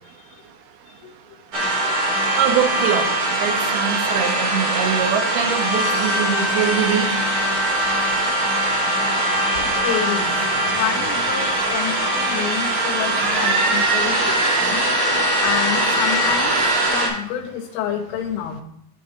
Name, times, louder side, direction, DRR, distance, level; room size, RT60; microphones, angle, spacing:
sound 1, 1.5-17.1, right 1 dB, 65° right, 1.0 m, -21 dB
voice 1, 2.3-3.1 3.4-7.1, right 8 dB, 90° right, 6 dB, 2.6 m, -23 dB
voice 2, 9.6-10.4 10.7-14.8 15.4-16.6 16.9-18.6, left 9 dB, 85° left, 6 dB, 2.7 m, -28 dB
10.0 x 3.7 x 4.5 m, 0.75 s
omnidirectional pair, 4.5 m